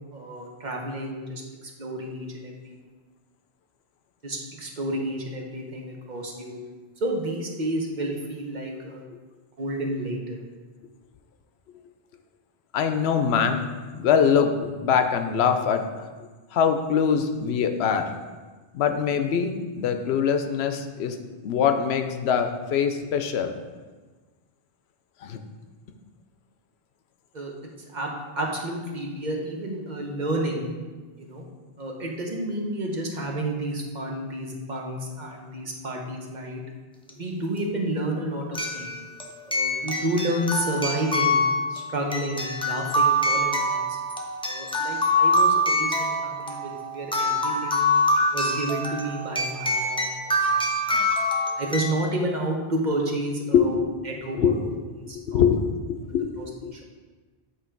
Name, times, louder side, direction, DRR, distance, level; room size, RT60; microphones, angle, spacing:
voice 1, 0.1-2.7 4.2-6.6 7.0-9.0 9.6-10.4 27.3-27.5 27.9-28.1 28.4-30.7 31.2-31.4 31.8-36.6 37.1-38.9 39.4-41.4 41.7-43.8 44.4-47.9 48.3-51.0 51.6-53.8 54.0-54.7 55.1-55.6 56.4-56.8, right 1 dB, 50° right, 0 dB, 0.9 m, -30 dB
voice 2, 12.7-13.6 13.9-15.8 16.5-18.1 18.7-21.2 21.4-23.5 25.2-25.4 53.5-53.7 54.4-54.5 55.3-55.6 55.9-56.3 56.6-56.7, left 7 dB, 80° left, 7 dB, 0.8 m, -23 dB
sound 1, 37.1-37.2 38.5-52.0, left 1 dB, 5° left, 0.5 m, -25 dB
8.6 x 3.1 x 4.5 m, 1.3 s
omnidirectional pair, 1.1 m